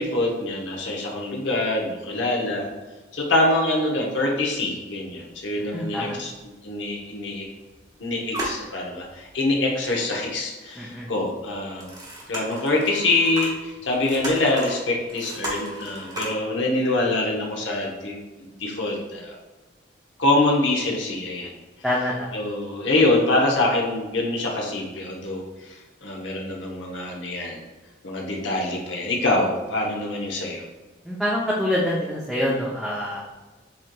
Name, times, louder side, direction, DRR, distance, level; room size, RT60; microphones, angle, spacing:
voice 1, 0.0-2.7 3.1-6.3 6.6-7.5 8.0-12.0 12.3-18.2 18.6-19.3 20.2-21.5 22.3-27.6 28.0-30.6, left 2 dB, 75° left, -1 dB, 0.8 m, -25 dB
voice 2, 5.7-6.2 10.8-11.1 21.8-22.3 31.0-33.2, left 1 dB, ahead, -7 dB, 0.5 m, -25 dB
sound 1, 5.7-5.8 6.6-6.7 7.2-7.9 8.1-9.3 9.8-9.9 11.5-16.3, right 1 dB, 20° right, 0.8 m, -35 dB
7.4 x 2.9 x 2.2 m, 1.2 s
head